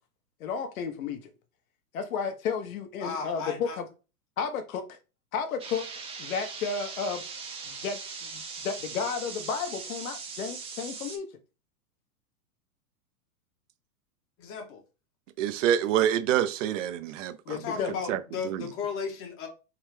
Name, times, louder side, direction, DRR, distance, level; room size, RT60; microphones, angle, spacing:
voice 1, 0.4-1.3 1.9-3.9 4.4-5.0 5.3-5.9 6.2-7.2 7.7-11.3 17.5-17.9, left 6 dB, 65° left, 1.0 m, -32 dB
voice 2, 3.0-3.8 14.4-14.8 17.5-19.5, left 6 dB, 30° left, 0.9 m, -35 dB
sound 1, 5.6-11.2, right 5 dB, 15° right, 0.5 m, -40 dB
voice 3, 15.4-17.6 18.1-18.2 18.4-18.7, right 10 dB, 55° right, 0.6 m, -26 dB
3.6 x 3.2 x 3.2 m
hypercardioid pair, 120°, 44 cm